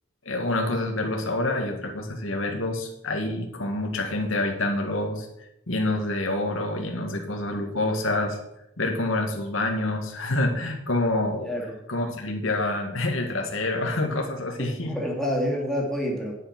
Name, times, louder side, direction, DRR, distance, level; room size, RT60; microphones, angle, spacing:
voice 1, 0.3-5.3 5.7-8.4 8.8-11.5 11.9-15.0, left 2 dB, 85° left, 3 dB, 2.0 m, -27 dB
voice 2, 11.5-11.8 14.6-16.4, equal, ahead, -2 dB, 2.7 m, -28 dB
9.7 x 8.9 x 6.1 m, 0.80 s
head